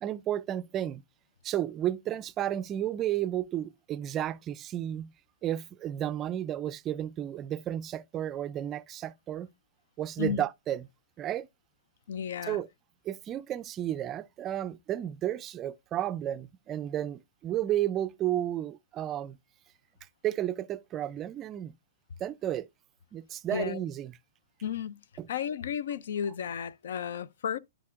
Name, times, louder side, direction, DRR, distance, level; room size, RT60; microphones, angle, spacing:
voice 1, 0.0-1.0 1.4-5.1 5.4-9.5 10.0-10.9 11.2-11.5 12.5-12.7 13.1-19.4 20.2-21.7 22.2-22.7 23.1-24.1 25.2-25.3, right 12 dB, 25° right, 0.4 m, -32 dB
voice 2, 12.1-12.6 23.5-23.8 24.6-25.0 25.3-27.6, left 8 dB, 70° left, 0.4 m, -33 dB
11.5 x 5.1 x 2.4 m
hypercardioid pair, 125°, 0 cm